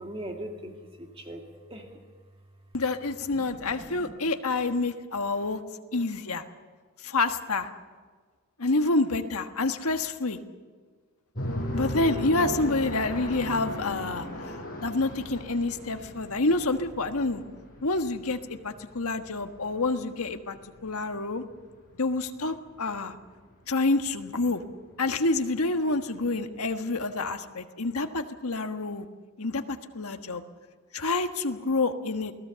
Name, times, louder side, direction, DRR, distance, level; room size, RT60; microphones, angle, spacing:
voice 1, 0.0-1.9 3.3-4.1, right 1 dB, 25° right, 3 dB, 2.1 m, -41 dB
voice 2, 2.7-5.6 5.9-6.4 7.0-7.7 8.6-10.4 11.7-14.5 14.8-17.4 17.8-20.6 20.8-21.4 22.0-23.1 23.7-24.6 25.0-29.1 29.4-30.4 30.9-32.3, left 3 dB, 80° left, 7 dB, 1.5 m, -28 dB
sound 1, 11.4-21.4 21.7-21.8 22.2-22.6 22.9-23.0 23.3-23.4 24.0-24.2 24.7-24.8, equal, 40° left, 6.2 m, -36 dB
29.0 x 18.5 x 7.0 m, 1.5 s
head